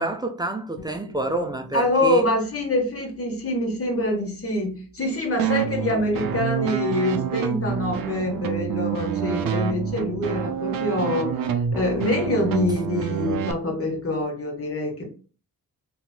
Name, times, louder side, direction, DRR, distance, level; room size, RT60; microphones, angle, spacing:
voice 1, 0.0-2.3, right 2 dB, 10° right, 0.5 m, -28 dB
sound 1, 0.8-12.6, right 2 dB, 75° left, 0.8 m, -52 dB
voice 2, 1.7-11.4 11.7-15.1, left 1 dB, 40° left, 1.2 m, -25 dB
sound 2, 5.4-13.5, right 8 dB, 70° right, 0.5 m, -27 dB
2.9 x 2.9 x 2.2 m
cardioid pair, 50°, 36 cm